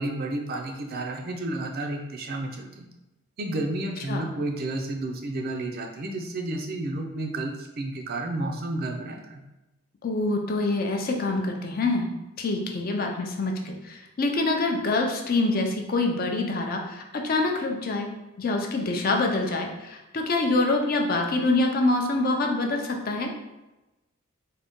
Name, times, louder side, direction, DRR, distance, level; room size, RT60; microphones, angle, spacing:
voice 1, 0.0-2.9 3.4-9.4, right 2 dB, 45° right, 2 dB, 0.4 m, -31 dB
voice 2, 10.0-12.1 12.4-18.1 18.4-23.3, left 2 dB, 40° left, 2 dB, 0.4 m, -25 dB
3.8 x 2.2 x 3.5 m, 1.0 s
head